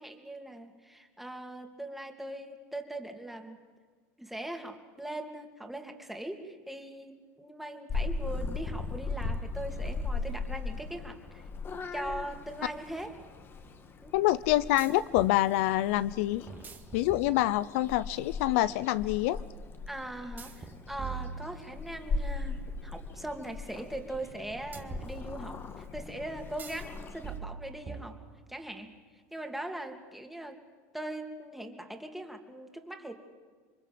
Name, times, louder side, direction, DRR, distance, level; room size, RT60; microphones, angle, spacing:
voice 1, 0.0-3.6 4.2-11.5 11.9-13.2 14.0-14.1 19.9-28.2 28.5-29.0 29.3-30.6 30.9-33.2, right 1 dB, 5° right, 4 dB, 2.7 m, -40 dB
Purr / Meow, 7.9-27.4, left 4 dB, 30° left, 2.0 m, -39 dB
sound 1, 12.4-12.5 14.8-15.4 16.5-17.8 20.4-22.1 24.7-25.7 26.6-26.9 27.2-28.6, right 6 dB, 25° right, 2.0 m, -43 dB
voice 2, 14.1-16.5 16.9-19.4, left 15 dB, 70° left, 17 dB, 0.7 m, -26 dB
27.0 x 23.5 x 7.8 m, 1.5 s
supercardioid pair, 115°, 8 cm